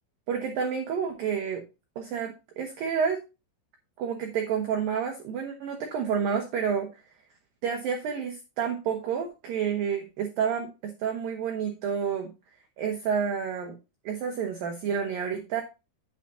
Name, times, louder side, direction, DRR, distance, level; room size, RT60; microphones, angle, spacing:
voice 1, 0.3-1.6 2.0-3.2 4.0-7.0 7.6-12.3 12.8-13.8 14.0-15.6, right 7 dB, 80° right, 3 dB, 2.0 m, -29 dB
9.1 x 9.0 x 2.7 m, 0.27 s
omnidirectional pair, 5.6 m